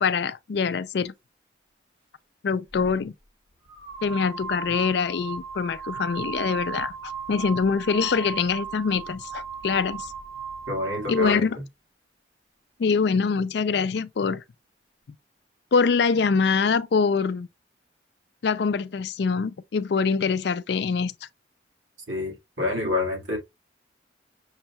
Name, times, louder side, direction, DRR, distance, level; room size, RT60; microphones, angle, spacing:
voice 1, 0.0-1.1 2.4-3.1 4.0-10.1 11.1-11.6 12.8-14.4 15.7-17.5 18.4-21.1, left 5 dB, 60° left, 0.4 m, -24 dB
sound 1, 2.7-2.9 3.7-11.4, right 6 dB, 70° right, 1.4 m, -36 dB
voice 2, 10.7-11.5 22.1-23.4, left 2 dB, 85° right, 1.8 m, -27 dB
6.3 x 2.2 x 2.8 m
head